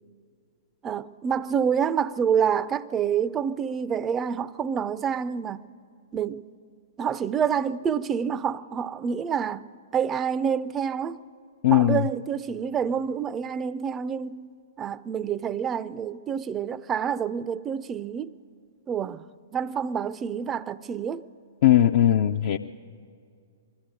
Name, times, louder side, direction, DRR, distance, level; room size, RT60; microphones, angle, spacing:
voice 1, 0.8-5.6 6.1-6.5 7.0-9.7 9.9-11.2 11.7-14.5 14.8-18.3 18.9-19.2 19.5-21.2, right 7 dB, 20° right, 0.4 m, -27 dB
voice 2, 11.6-12.1 21.6-22.6, left 11 dB, 45° left, 0.5 m, -19 dB
21.5 x 14.0 x 9.1 m
figure-of-eight pair, 110°, 0 cm